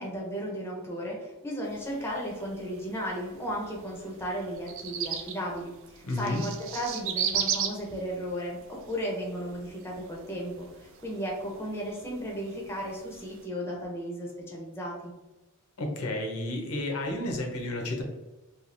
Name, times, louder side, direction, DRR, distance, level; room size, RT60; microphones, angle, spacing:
voice 1, 0.0-15.1, equal, 10° left, -2 dB, 0.5 m, -35 dB
sound 1, 1.6-13.5, right 8 dB, 60° right, 0.3 m, -38 dB
voice 2, 6.0-6.4 15.8-18.0, left 1 dB, 80° left, 2 dB, 0.7 m, -31 dB
3.1 x 2.3 x 2.6 m, 1.1 s
head